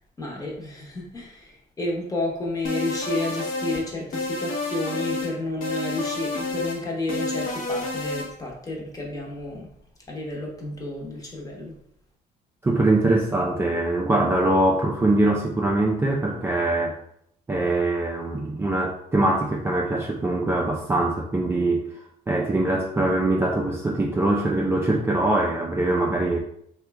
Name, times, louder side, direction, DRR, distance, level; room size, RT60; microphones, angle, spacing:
voice 1, 0.2-9.7 10.1-11.8, left 2 dB, 20° left, -1 dB, 0.8 m, -31 dB
sound 1, 2.6-3.8 4.1-5.3 5.6-6.8 7.1-8.3, left 3 dB, 55° left, 0.7 m, -29 dB
voice 2, 12.6-16.9 17.5-21.9 22.3-26.4, right 2 dB, 15° right, -1 dB, 0.4 m, -22 dB
3.0 x 2.2 x 3.3 m, 0.71 s
cardioid pair, 110°, 17 cm